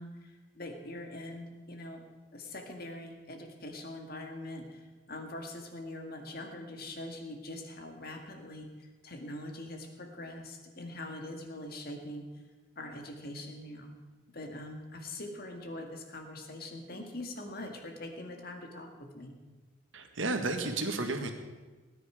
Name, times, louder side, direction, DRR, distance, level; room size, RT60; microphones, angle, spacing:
voice 1, 0.0-2.0 2.3-12.3 12.7-13.9 14.3-19.4, left 1 dB, 45° left, 4 dB, 1.8 m, -43 dB
voice 2, 19.9-21.3, right 2 dB, 70° right, 5 dB, 1.6 m, -32 dB
18.5 x 9.7 x 4.9 m, 1.3 s
head